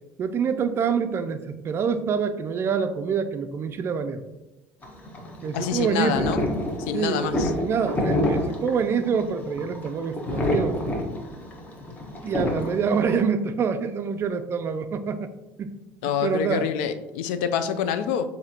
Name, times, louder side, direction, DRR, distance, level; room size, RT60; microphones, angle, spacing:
voice 1, 0.2-4.2 5.4-6.3 6.9-10.8 12.2-15.3 15.6-15.7 16.2-16.7, right 6 dB, 40° right, 9 dB, 0.4 m, -26 dB
sound 1, 4.8-13.2, left 1 dB, 25° left, 1.2 m, -28 dB
voice 2, 5.6-6.4 6.8-7.5 16.0-18.2, left 8 dB, 80° left, 10 dB, 0.4 m, -26 dB
7.0 x 2.7 x 2.8 m, 1.0 s
supercardioid pair, 90°, 6 cm